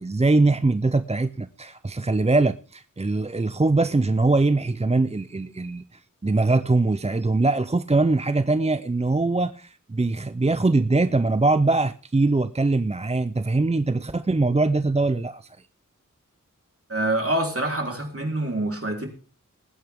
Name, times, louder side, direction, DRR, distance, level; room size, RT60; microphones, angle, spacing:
voice 1, 0.0-15.6, right 3 dB, 20° right, 0.5 m, -22 dB
voice 2, 16.9-19.1, right 1 dB, 45° right, 3.7 m, -26 dB
20.5 x 9.1 x 3.6 m
wide cardioid pair, 45°, 32 cm